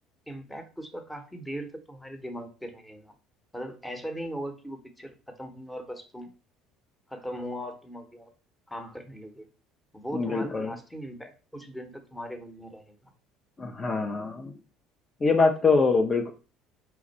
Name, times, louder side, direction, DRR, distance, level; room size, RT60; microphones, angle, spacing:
voice 1, 0.3-3.1 3.5-6.3 7.1-8.3 8.7-9.5 9.9-13.0, equal, 5° left, 6 dB, 1.0 m, -39 dB
voice 2, 10.1-10.7 13.6-14.5 15.2-16.3, left 4 dB, 30° left, 4 dB, 0.6 m, -24 dB
4.4 x 2.4 x 4.1 m, 0.35 s
hypercardioid pair, 65°, 0 cm